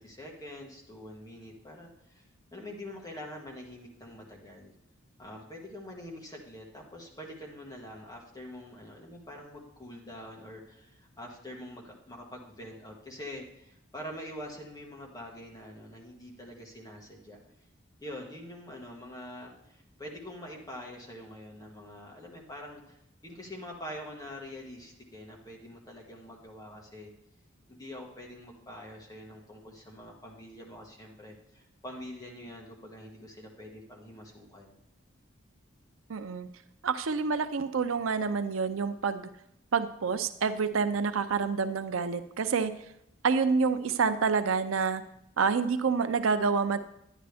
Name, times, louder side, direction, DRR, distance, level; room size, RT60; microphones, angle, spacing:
voice 1, 0.0-2.2 2.5-4.7 5.2-17.4 18.0-23.0 23.2-27.1 27.7-34.7, left 1 dB, 20° left, -1 dB, 1.6 m, -45 dB
voice 2, 36.1-36.5 36.8-39.3 39.7-42.7 43.2-45.0 45.4-46.8, right 5 dB, 90° right, 10 dB, 0.5 m, -28 dB
10.0 x 10.0 x 3.4 m, 0.79 s
head